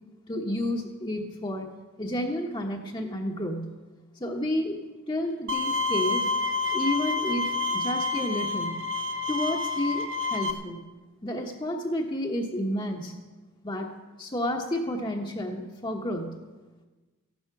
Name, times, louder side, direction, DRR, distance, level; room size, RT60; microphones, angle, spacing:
voice 1, 0.3-1.7 2.0-3.7 4.2-4.8 5.1-6.3 6.7-8.8 9.3-10.9 11.2-13.1 13.6-13.9 14.2-16.4, left 1 dB, 20° left, 0 dB, 1.0 m, -31 dB
Bowed string instrument, 5.5-10.5, left 3 dB, 65° right, 1.0 m, -28 dB
14.5 x 11.5 x 5.9 m, 1.2 s
head